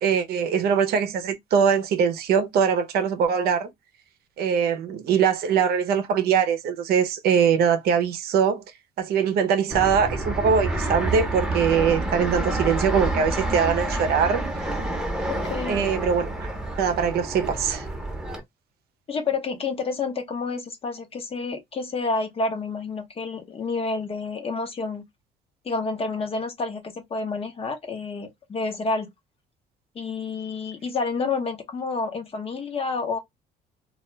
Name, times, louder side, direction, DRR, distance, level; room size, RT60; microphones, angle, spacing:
voice 1, 0.0-3.7 4.4-8.6 9.0-14.4 15.7-16.5 16.8-17.9, right 7 dB, 70° right, 0.6 m, -22 dB
Fixed-wing aircraft airplane, 9.7-18.4, right 1 dB, 5° right, 0.8 m, -28 dB
voice 2, 15.3-15.8 19.1-25.0 25.6-29.1 29.9-33.2, left 4 dB, 35° left, 0.8 m, -29 dB
2.3 x 2.2 x 3.1 m
cardioid pair, 110°, 17 cm